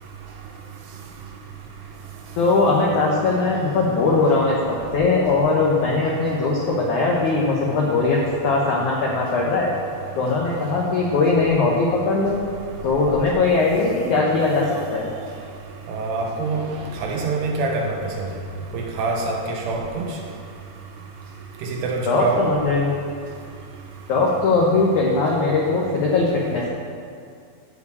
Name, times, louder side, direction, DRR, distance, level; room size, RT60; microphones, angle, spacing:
voice 1, 2.4-9.7 10.2-12.4 12.8-14.7 14.9-15.1 22.1-22.9 24.1-26.7, left 3 dB, 80° left, -3 dB, 1.7 m, -20 dB
voice 2, 15.9-16.6 17.0-18.3 18.7-20.1 21.6-22.5, right 3 dB, 75° right, 1 dB, 3.0 m, -25 dB
13.0 x 5.0 x 8.4 m, 2.4 s
omnidirectional pair, 5.1 m